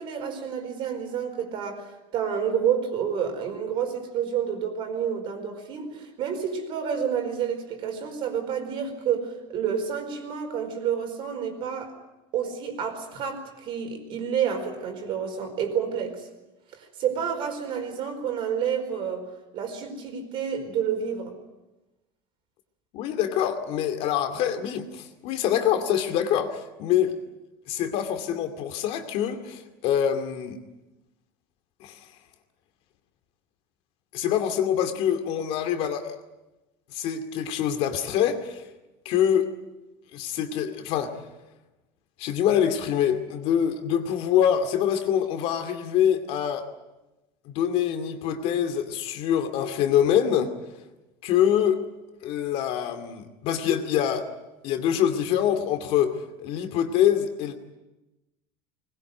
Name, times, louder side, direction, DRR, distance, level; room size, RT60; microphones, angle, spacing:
voice 1, 0.0-11.9 12.3-16.3 16.7-19.2 19.5-21.3, right 8 dB, 45° right, 6 dB, 4.7 m, -29 dB
voice 2, 22.9-27.1 27.7-30.6 31.8-32.0 34.1-36.2 36.9-38.7 39.0-39.5 40.1-41.1 42.2-46.6 47.5-50.5 51.2-51.8 52.2-54.3 54.6-57.5, left 9 dB, 55° left, 7 dB, 2.4 m, -25 dB
21.0 x 20.5 x 9.3 m, 1.0 s
cardioid pair, 150°, 12 cm